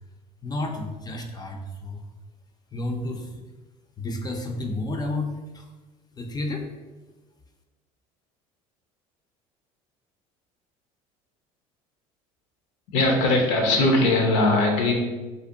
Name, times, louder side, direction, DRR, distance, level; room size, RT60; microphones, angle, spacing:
voice 1, 0.4-2.0 2.7-3.4 4.0-5.7 6.2-6.7, left 2 dB, 25° left, 3 dB, 0.4 m, -31 dB
voice 2, 12.9-14.9, left 2 dB, 70° left, 2 dB, 0.6 m, -20 dB
2.5 x 2.1 x 2.6 m, 1.2 s
hypercardioid pair, 80°, 17 cm